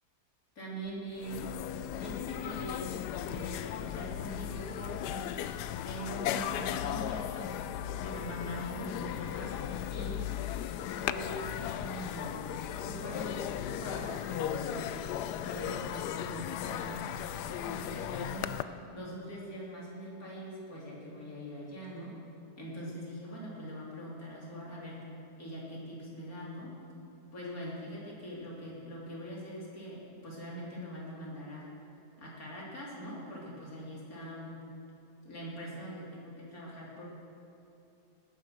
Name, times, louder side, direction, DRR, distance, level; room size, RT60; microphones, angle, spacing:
voice 1, 0.6-1.4 2.0-2.9 3.2-5.3 5.8-7.6 8.0-10.3 10.9-12.4 12.8-14.9 15.4-17.2 17.6-18.6 18.9-22.1 22.6-25.0 25.4-26.7 27.3-31.7 32.2-34.6 35.2-37.1, equal, 60° left, -5 dB, 4.0 m, -42 dB
sound 1, 0.9-1.0 1.2-18.6, left 10 dB, 85° left, 1.2 m, -36 dB
19.0 x 10.5 x 6.3 m, 2.8 s
omnidirectional pair, 1.7 m